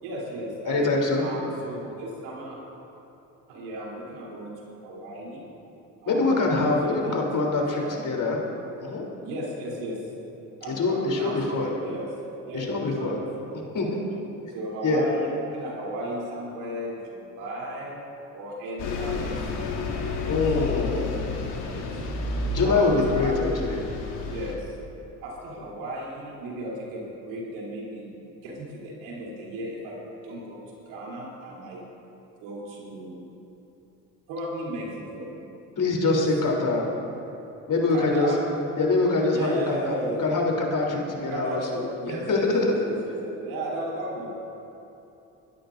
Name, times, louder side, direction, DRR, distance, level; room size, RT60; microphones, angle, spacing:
voice 1, 0.0-0.9 1.2-2.6 3.5-4.5 4.8-5.4 6.0-7.2 7.8-8.2 9.2-10.0 10.6-12.1 12.5-13.2 13.8-14.0 14.5-18.0 18.3-19.4 20.2-22.0 22.6-23.4 24.2-24.8 25.2-28.1 28.4-30.0 30.2-31.8 32.4-33.2 34.3-35.4 36.0-36.2 37.9-38.4 39.3-40.3 41.3-44.4, right 1 dB, 85° right, -4 dB, 3.5 m, -35 dB
voice 2, 0.7-1.2 6.1-8.4 8.8-9.0 10.7-11.7 12.5-13.2 13.5-13.9 14.8-15.0 20.2-21.1 22.5-23.8 35.8-36.9 37.7-38.3 38.8-39.9 40.2-42.7, left 3 dB, 50° left, -1 dB, 3.4 m, -24 dB
Bus, 18.8-24.5, left 3 dB, 75° left, 2.0 m, -31 dB
26.5 x 13.0 x 2.6 m, 3.0 s
supercardioid pair, 65°, 40 cm